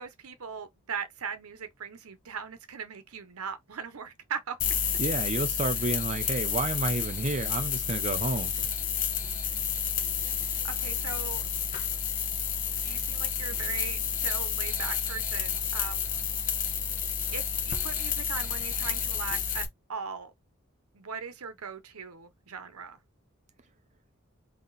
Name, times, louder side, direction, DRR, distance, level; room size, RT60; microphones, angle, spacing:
voice 1, 0.0-4.6 10.6-11.4 12.8-16.1 17.3-19.6 19.9-20.3 20.9-23.0, right 6 dB, 90° right, 0.8 m, -39 dB
sound 1, 4.6-19.6, left 7 dB, 40° left, 0.9 m, -30 dB
voice 2, 5.0-8.5, right 3 dB, 30° right, 0.5 m, -30 dB
4.0 x 2.9 x 3.9 m
head